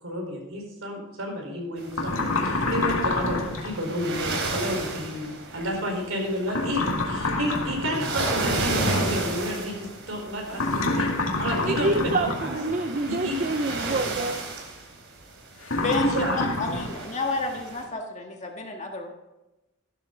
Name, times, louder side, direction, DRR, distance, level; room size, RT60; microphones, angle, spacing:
voice 1, 0.0-11.1 11.4-12.6 13.1-13.4 16.1-16.4, equal, 80° right, 1 dB, 4.3 m, -31 dB
sound 1, 1.8-17.8, right 2 dB, 60° right, 3.2 m, -33 dB
sound 2, 1.9-3.8 6.5-8.1 10.5-12.5 15.6-16.9, left 2 dB, 80° left, 2.1 m, -27 dB
voice 2, 11.6-14.4, right 2 dB, 40° right, 8 dB, 0.6 m, -27 dB
voice 3, 15.8-19.1, left 2 dB, 35° left, 1 dB, 1.9 m, -29 dB
14.0 x 12.0 x 3.9 m, 1.0 s
head